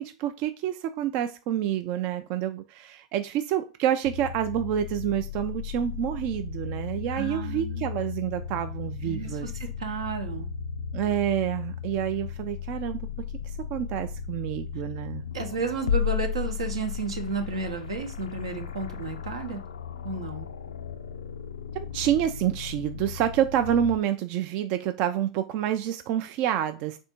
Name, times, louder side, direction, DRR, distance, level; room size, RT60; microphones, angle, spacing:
voice 1, 0.0-9.5 10.9-13.0 13.4-15.2 21.7-27.0, right 10 dB, 50° right, 0.3 m, -28 dB
sound 1, 4.0-24.0, left 8 dB, 85° left, 0.4 m, -35 dB
voice 2, 7.1-8.0 9.0-10.5 15.3-19.6 20.0-20.5, right 4 dB, 80° right, 0.8 m, -33 dB
3.4 x 2.6 x 4.3 m
hypercardioid pair, 95°, 3 cm